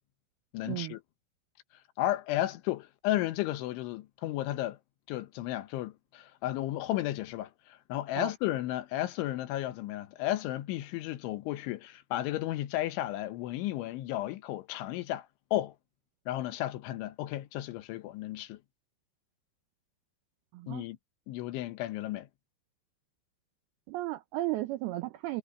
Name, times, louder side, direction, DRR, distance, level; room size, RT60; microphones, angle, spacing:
voice 1, 0.5-1.0 2.0-4.8 5.1-15.7 16.3-18.6 20.7-21.0 21.3-22.3, left 14 dB, 80° left, 3.5 m, -33 dB
voice 2, 23.9-25.4, right 17 dB, 85° right, 2.2 m, -34 dB
omnidirectional pair, 5.4 m